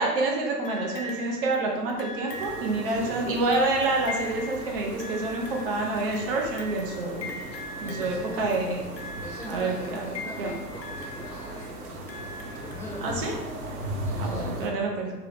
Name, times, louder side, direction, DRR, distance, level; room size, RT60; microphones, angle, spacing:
voice 1, 0.0-7.4 7.8-8.9 9.5-10.1 10.4-10.5 13.0-13.3 14.2-15.1, right 2 dB, 35° right, 0 dB, 0.6 m, -27 dB
sound 1, 0.6-13.5 14.4-14.5, left 2 dB, 85° left, 0.7 m, -41 dB
sound 2, 2.3-14.7, right 1 dB, 65° right, 1.0 m, -38 dB
voice 2, 2.8-3.2 7.8-8.5 9.2-13.4 14.0-14.5, equal, 10° left, -10 dB, 0.5 m, -42 dB
3.7 x 2.9 x 3.2 m, 1.2 s
figure-of-eight pair, 110°, 48 cm